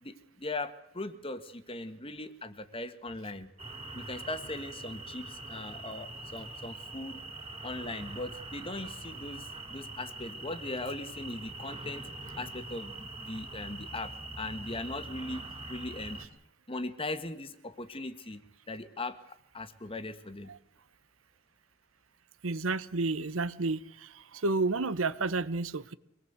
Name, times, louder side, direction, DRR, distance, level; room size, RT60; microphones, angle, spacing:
voice 1, 0.0-3.5 3.9-7.2 7.6-12.0 12.4-15.4 15.7-16.2 16.7-18.4 18.7-20.5, left 2 dB, 25° left, 1.5 m, -39 dB
sound 1, 3.6-16.3, right 2 dB, 30° right, 3.8 m, -43 dB
voice 2, 22.4-23.8 24.4-25.9, right 3 dB, 85° right, 1.0 m, -30 dB
24.5 x 19.5 x 8.0 m
head